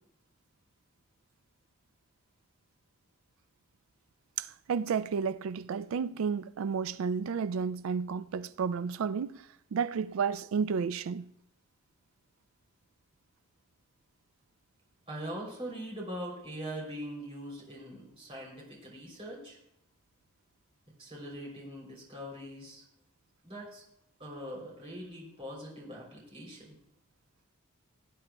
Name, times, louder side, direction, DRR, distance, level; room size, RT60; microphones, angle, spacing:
voice 1, 4.4-9.4 9.7-11.2, right 6 dB, 75° right, 0.3 m, -32 dB
voice 2, 15.1-19.6 21.0-22.8 23.4-23.8 24.2-26.8, equal, 30° right, 3.1 m, -42 dB
17.5 x 8.8 x 2.2 m
head